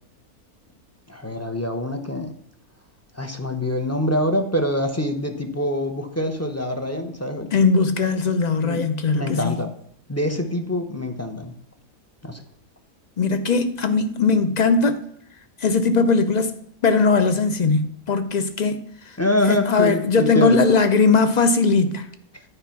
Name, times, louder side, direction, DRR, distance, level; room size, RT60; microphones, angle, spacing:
voice 1, 1.1-2.3 3.1-7.5 8.6-8.8 9.1-9.7 10.1-11.5 12.2-12.4 19.2-20.6, left 1 dB, 15° left, 0.6 m, -25 dB
voice 2, 7.5-9.6 13.2-15.1 15.6-16.6 16.8-19.2 19.5-22.1, left 4 dB, 65° left, 0.4 m, -19 dB
9.9 x 4.9 x 5.8 m
omnidirectional pair, 1.5 m